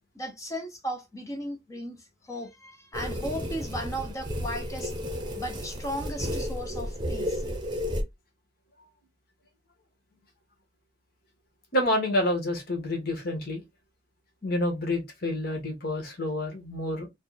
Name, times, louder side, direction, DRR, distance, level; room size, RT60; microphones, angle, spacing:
voice 1, 0.1-2.0 2.3-4.9 5.3-7.4, equal, 15° left, 0.8 m, -36 dB
sound 1, 2.9-8.0, equal, 25° right, 0.9 m, -32 dB
voice 2, 11.7-13.6 14.4-17.1, left 1 dB, 55° left, 1.7 m, -28 dB
4.2 x 2.4 x 4.1 m
head